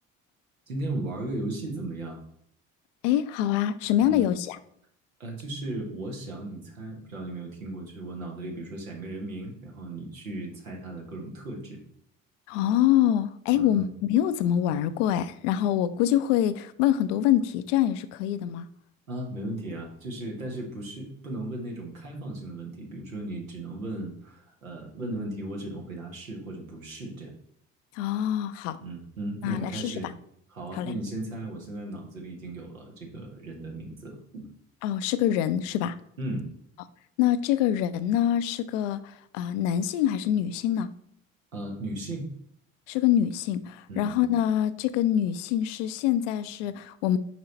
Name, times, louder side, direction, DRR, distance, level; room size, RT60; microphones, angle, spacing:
voice 1, 0.7-2.2 4.0-4.3 5.2-11.8 13.5-13.8 19.1-27.3 28.8-30.1 30.5-34.5 36.2-36.5 41.5-42.3 43.9-44.2, right 1 dB, 85° right, 1.2 m, -36 dB
voice 2, 3.0-4.6 12.5-18.7 27.9-28.8 29.4-29.9 30.8-30.9 34.8-36.0 37.2-40.9 42.9-47.2, left 11 dB, 65° left, 0.5 m, -25 dB
6.0 x 4.7 x 4.1 m
figure-of-eight pair, 50°, 40 cm